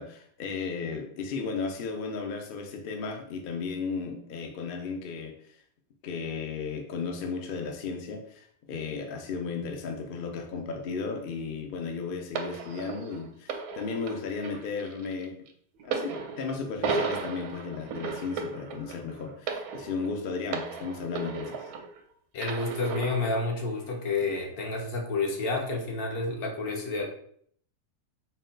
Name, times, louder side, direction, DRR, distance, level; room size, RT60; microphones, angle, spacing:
voice 1, 0.0-5.3 6.0-15.4 15.8-21.6, left 5 dB, 60° left, 3 dB, 0.5 m, -35 dB
sound 1, 12.3-22.0 22.4-23.4 24.2-24.4, right 4 dB, 80° right, 1.1 m, -35 dB
voice 2, 22.3-27.0, left 3 dB, 75° left, 1 dB, 1.3 m, -30 dB
4.2 x 2.2 x 3.7 m, 0.63 s
omnidirectional pair, 1.6 m